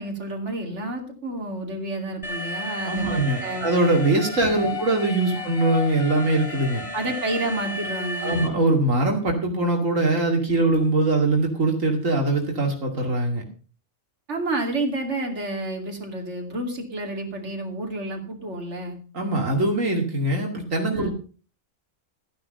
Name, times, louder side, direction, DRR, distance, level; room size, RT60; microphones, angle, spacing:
voice 1, 0.0-3.7 4.6-4.8 5.3-5.5 6.9-8.5 14.3-19.0 20.9-21.1, right 2 dB, 60° right, 2 dB, 3.1 m, -30 dB
Alarm, 2.2-8.5, left 2 dB, 25° left, 2.3 m, -33 dB
voice 2, 2.8-6.8 8.2-13.4 19.1-21.1, right 2 dB, 85° right, 1 dB, 2.9 m, -22 dB
14.5 x 10.5 x 5.5 m, 0.38 s
omnidirectional pair, 1.3 m